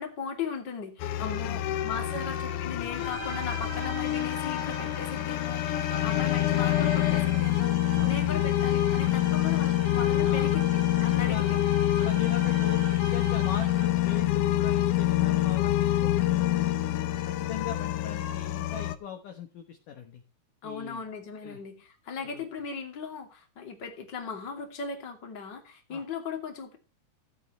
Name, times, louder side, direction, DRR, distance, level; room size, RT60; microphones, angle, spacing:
voice 1, 0.0-11.6 20.6-26.8, left 5 dB, 30° left, 3 dB, 2.7 m, -37 dB
sound 1, 1.0-19.0, left 14 dB, 85° left, 1.8 m, -26 dB
voice 2, 1.2-1.8 2.2-2.3 5.8-6.1 8.0-8.2 10.2-10.5 11.2-11.5 12.0-20.2 20.6-21.0 21.4-21.6 22.2-22.4 25.9-26.0, left 8 dB, 60° left, 4 dB, 2.5 m, -40 dB
sound 2, 3.0-14.1, right 9 dB, 65° right, 3.7 m, -43 dB
16.5 x 8.6 x 3.2 m, 0.33 s
omnidirectional pair, 4.9 m